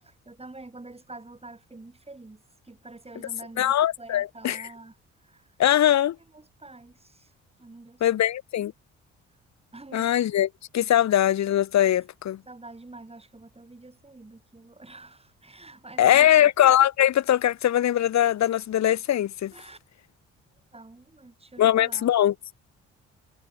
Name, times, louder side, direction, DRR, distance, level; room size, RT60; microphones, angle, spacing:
voice 1, 0.0-5.0 5.2-5.5 6.3-7.3 7.6-8.2 9.7-10.2 12.5-16.5 19.5-19.8 20.7-22.1, right 2 dB, 20° right, 6.6 m, -47 dB
voice 2, 3.6-4.7 5.6-6.2 8.0-8.7 9.9-10.5 10.7-12.4 16.0-19.5 21.6-22.3, left 11 dB, 60° left, 1.3 m, -21 dB
hypercardioid pair, 55°, 31 cm